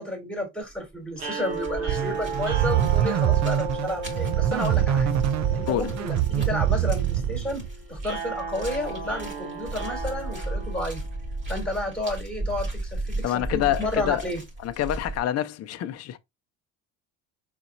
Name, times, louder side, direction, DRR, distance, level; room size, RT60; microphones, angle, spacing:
voice 1, 0.0-5.1 5.5-7.6 7.9-11.0 11.5-14.4, left 1 dB, ahead, 2.8 m, -31 dB
sound 1, 0.6-0.9 1.2-15.2, right 1 dB, 25° right, 2.8 m, -36 dB
sound 2, 1.2-11.4, right 3 dB, 80° right, 1.8 m, -35 dB
sound 3, 1.9-7.7, right 11 dB, 45° right, 0.6 m, -24 dB
voice 2, 13.2-14.2 14.6-16.2, left 12 dB, 40° left, 0.6 m, -26 dB
4.3 x 4.0 x 2.5 m
hypercardioid pair, 70°, 41 cm